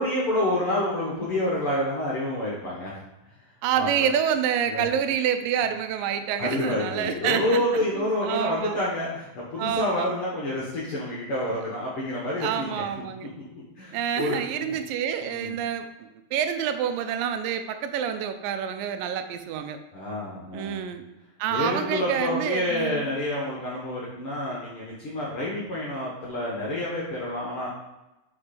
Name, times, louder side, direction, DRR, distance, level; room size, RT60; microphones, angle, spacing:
voice 1, 0.0-2.9 3.8-4.1 4.7-4.8 6.4-12.8 13.5-14.7 15.2-15.5 19.9-20.8 21.5-27.7, left 1 dB, 60° left, -5 dB, 1.5 m, -28 dB
voice 2, 3.6-8.8 9.6-10.1 12.4-13.3 13.9-19.8 20.5-21.0 21.4-23.1, right 8 dB, 85° right, 8 dB, 2.2 m, -28 dB
5.8 x 5.3 x 4.3 m, 0.96 s
omnidirectional pair, 4.0 m